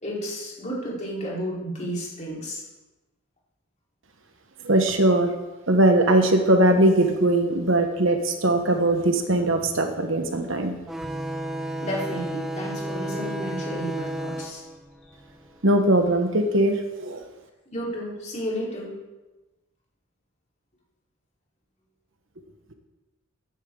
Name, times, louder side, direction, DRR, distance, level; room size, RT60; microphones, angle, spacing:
voice 1, 0.0-2.6 11.8-14.6 15.1-15.2 17.7-18.9, equal, 35° left, -5 dB, 4.1 m, -32 dB
voice 2, 4.6-5.3 5.7-10.8 15.6-17.3, right 1 dB, 60° right, 5 dB, 1.2 m, -20 dB
sound 1, 10.9-16.0, right 1 dB, ahead, 0.9 m, -33 dB
15.0 x 9.9 x 3.9 m, 1.1 s
head